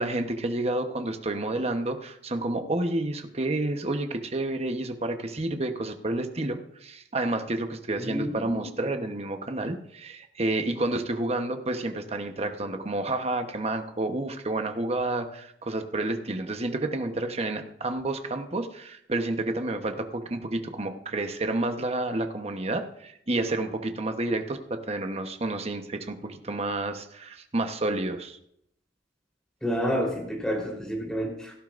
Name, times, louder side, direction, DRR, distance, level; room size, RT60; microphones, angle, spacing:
voice 1, 0.0-28.4, right 2 dB, 35° right, 6 dB, 1.1 m, -30 dB
voice 2, 8.0-8.7 29.6-31.6, equal, 5° left, -1 dB, 3.8 m, -29 dB
17.0 x 12.5 x 2.6 m, 0.73 s
head